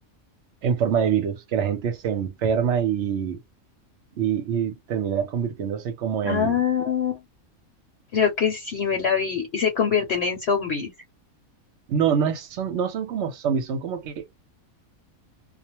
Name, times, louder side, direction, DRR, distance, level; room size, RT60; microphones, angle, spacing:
voice 1, 0.6-3.4 4.2-6.6 11.9-14.2, right 7 dB, 60° right, 0.9 m, -25 dB
voice 2, 6.2-7.2 8.1-10.9, left 7 dB, 55° left, 0.9 m, -24 dB
2.5 x 2.1 x 2.8 m
omnidirectional pair, 1.5 m